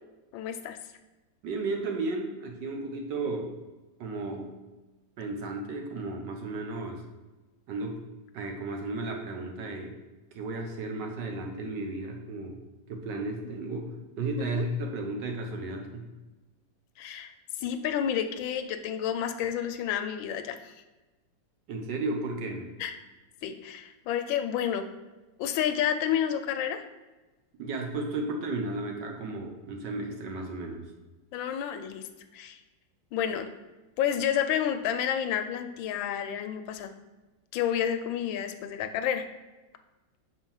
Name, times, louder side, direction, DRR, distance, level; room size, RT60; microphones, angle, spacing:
voice 1, 0.3-0.8 14.5-14.6 17.0-17.3 17.6-20.7 22.8-22.9 23.4-24.9 25.4-26.8 31.3-32.1 32.3-32.6 33.1-33.5 34.0-36.9 37.5-39.2, left 9 dB, 80° left, 8 dB, 1.4 m, -30 dB
voice 2, 1.4-3.6 4.0-4.5 5.2-7.0 7.7-8.0 8.3-10.0 10.3-12.6 12.9-16.1 21.7-22.7 27.6-30.9, right 2 dB, 65° right, 2 dB, 1.5 m, -34 dB
5.8 x 4.4 x 5.5 m, 1.1 s
omnidirectional pair, 2.1 m